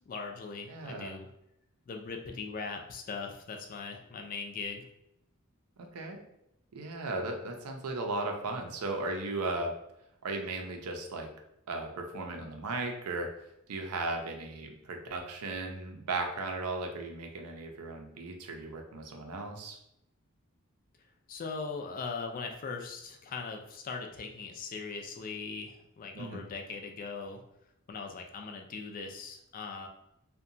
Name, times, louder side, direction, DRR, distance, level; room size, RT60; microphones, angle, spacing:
voice 1, 0.1-1.3 1.9-4.9 21.3-27.4 27.9-29.9, left 4 dB, 40° left, 4 dB, 0.3 m, -40 dB
voice 2, 0.7-1.2 5.8-6.2 6.7-9.7 10.2-11.3 11.7-13.3 13.7-19.8 26.2-26.4, right 2 dB, 85° right, 3 dB, 0.5 m, -36 dB
2.7 x 2.2 x 2.6 m, 0.81 s
head